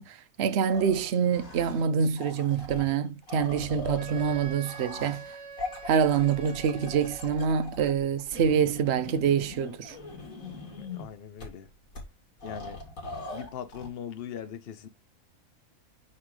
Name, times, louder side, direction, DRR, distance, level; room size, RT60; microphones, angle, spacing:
voice 1, 0.0-5.2 5.8-10.0, right 7 dB, 60° right, 0.9 m, -26 dB
sound 1, 0.7-1.9 2.2-11.1 11.4-11.5 11.9-12.0 12.4-13.9, left 2 dB, 75° left, 2.5 m, -41 dB
Wind instrument woodwind instrument, 4.0-7.5, right 5 dB, 20° left, 1.7 m, -45 dB
voice 2, 10.8-11.7 12.4-12.8 13.3-14.9, left 9 dB, 50° left, 0.9 m, -40 dB
5.5 x 4.4 x 4.8 m
omnidirectional pair, 1.5 m